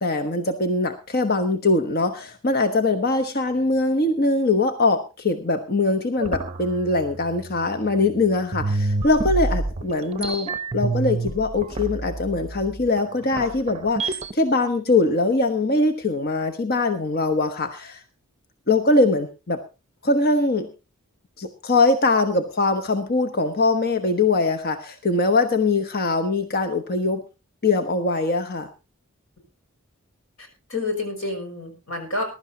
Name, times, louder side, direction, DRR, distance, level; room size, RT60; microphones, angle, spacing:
voice 1, 0.0-18.0 18.7-19.6 20.0-20.7 21.4-27.2 27.6-28.7, left 3 dB, 45° left, 7 dB, 1.1 m, -22 dB
sound 1, 6.2-8.1 8.5-14.3, right 3 dB, 30° right, 1.0 m, -28 dB
voice 2, 30.4-32.2, left 2 dB, 70° left, 4 dB, 6.0 m, -29 dB
21.5 x 12.0 x 2.8 m, 0.29 s
head